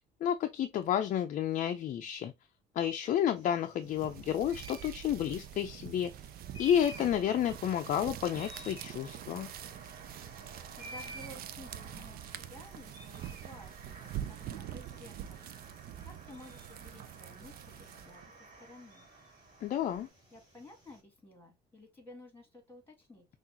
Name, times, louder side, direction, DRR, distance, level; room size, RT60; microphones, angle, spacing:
voice 1, 0.2-2.3 2.8-6.1 6.6-9.5 19.6-20.1, left 10 dB, 50° left, 0.5 m, -31 dB
sound 1, 3.4-21.0, equal, 25° right, 2.7 m, -54 dB
sound 2, 3.8-18.3, right 11 dB, 60° right, 0.5 m, -45 dB
sound 3, 6.4-20.1, right 4 dB, 45° right, 1.8 m, -54 dB
voice 2, 10.7-14.0 14.3-15.5 16.0-18.3 18.6-19.1 20.3-23.3, left 1 dB, 10° left, 2.0 m, -53 dB
5.8 x 2.5 x 2.7 m
cardioid pair, 110°, 17 cm